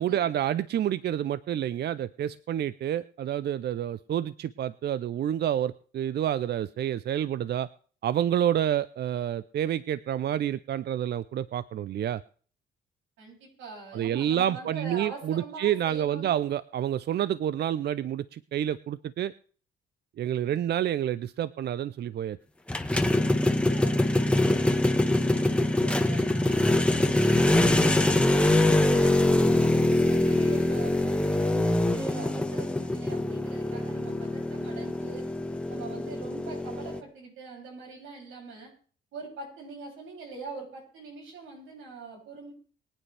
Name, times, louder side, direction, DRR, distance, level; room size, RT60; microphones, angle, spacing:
voice 1, 0.0-7.7 8.0-12.2 13.9-19.3 20.2-22.4, right 10 dB, 55° right, 16 dB, 0.5 m, -28 dB
voice 2, 13.2-16.3 20.5-20.6 23.5-29.2 29.6-35.2 35.7-38.7 39.1-42.5, right 4 dB, 90° right, -1 dB, 7.1 m, -43 dB
sound 1, 22.7-37.0, left 1 dB, 5° left, 1.3 m, -24 dB
23.5 x 9.0 x 3.4 m, 0.44 s
cardioid pair, 90°, 20 cm